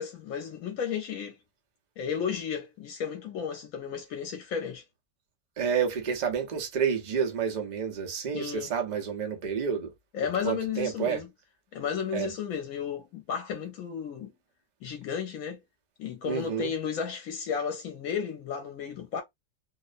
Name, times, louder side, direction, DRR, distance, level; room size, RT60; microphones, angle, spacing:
voice 1, 0.0-1.4 2.0-4.8 8.3-8.7 10.1-11.3 11.7-14.3 14.8-15.6 16.0-19.2, left 7 dB, 75° left, 1.1 m, -33 dB
voice 2, 5.6-9.9 10.4-11.2 12.1-12.3 16.3-16.7, right 7 dB, 45° right, 0.6 m, -29 dB
2.7 x 2.0 x 2.5 m
omnidirectional pair, 1.5 m